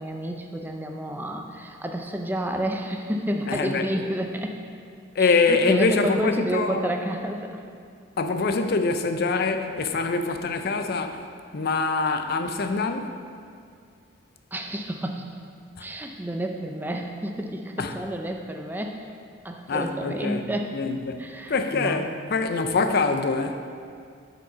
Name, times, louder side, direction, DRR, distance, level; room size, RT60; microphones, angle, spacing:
voice 1, 0.0-4.6 5.2-7.6 14.5-15.2 15.8-19.0 19.4-20.7 21.2-22.1, right 1 dB, 10° right, 3 dB, 0.5 m, -30 dB
voice 2, 3.5-3.8 5.2-6.9 8.2-11.2 11.5-13.2 15.8-15.9 17.8-17.9 19.7-20.4 20.7-23.7, left 4 dB, 50° left, 7 dB, 0.5 m, -24 dB
7.6 x 5.1 x 5.5 m, 2.3 s
head